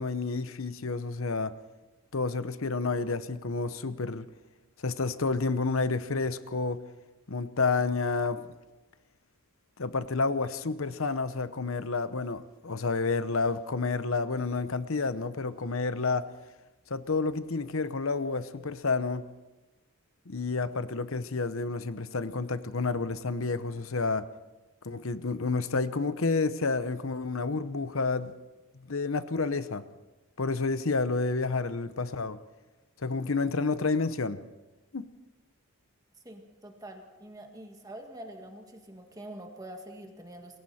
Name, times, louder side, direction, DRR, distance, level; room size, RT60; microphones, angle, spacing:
voice 1, 0.0-1.6 2.1-4.2 4.8-6.8 7.3-8.5 9.8-16.3 16.9-19.3 20.3-24.3 24.8-28.3 28.9-29.8 30.4-32.4 33.0-34.4 34.9-35.1, left 4 dB, 65° left, 0.9 m, -30 dB
voice 2, 36.2-40.6, right 1 dB, 15° right, 1.8 m, -45 dB
28.5 x 21.5 x 4.3 m
head